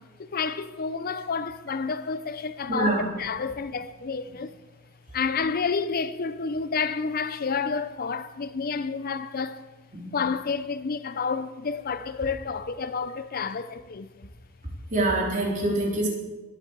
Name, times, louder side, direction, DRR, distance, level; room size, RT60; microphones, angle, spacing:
voice 1, 0.0-4.6 5.1-9.6 10.1-14.3, left 5 dB, 40° left, 0.5 m, -30 dB
voice 2, 2.7-3.0 9.9-10.1 14.9-16.1, right 2 dB, 35° right, 3.8 m, -25 dB
21.0 x 8.3 x 7.3 m
head